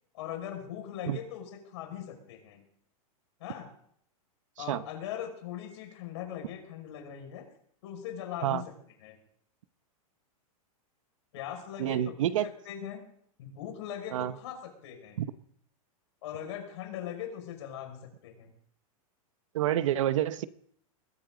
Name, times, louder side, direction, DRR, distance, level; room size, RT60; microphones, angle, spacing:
voice 1, 0.1-2.6 3.4-3.7 4.6-7.5 7.8-8.7 9.0-9.2 11.3-12.1 12.4-13.0 13.4-15.2 16.2-18.5, left 10 dB, 50° left, 3 dB, 5.8 m, -40 dB
voice 2, 11.8-12.5 14.1-14.3 15.2-15.3 19.5-20.5, right 12 dB, 60° right, 14 dB, 1.0 m, -28 dB
21.0 x 16.0 x 4.0 m, 0.65 s
supercardioid pair, 175°, 18 cm